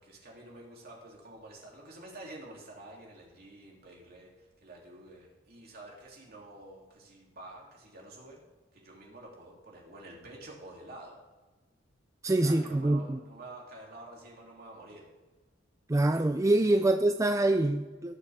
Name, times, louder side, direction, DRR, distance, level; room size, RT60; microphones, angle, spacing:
voice 1, 0.0-8.4 8.7-11.2 12.3-15.1 16.6-16.8, right 2 dB, 55° right, -2 dB, 3.1 m, -49 dB
voice 2, 12.2-13.2 15.9-18.1, right 2 dB, 15° right, 7 dB, 0.4 m, -25 dB
18.5 x 6.6 x 3.6 m, 1.2 s
head